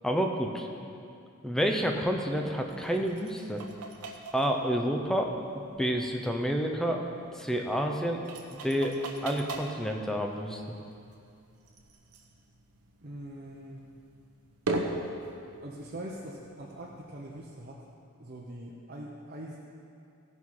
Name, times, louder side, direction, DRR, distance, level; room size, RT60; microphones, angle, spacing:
voice 1, 0.0-0.7 1.4-3.6 4.3-5.3 5.8-7.0 7.3-8.2 8.6-9.0 9.2-10.8, equal, ahead, 2 dB, 0.7 m, -29 dB
sound 1, 1.7-17.5, right 2 dB, 90° right, 1.0 m, -42 dB
voice 2, 13.0-13.9 15.6-17.8 18.2-19.6, right 1 dB, 40° right, -4 dB, 0.8 m, -42 dB
16.0 x 5.6 x 4.7 m, 2.5 s
head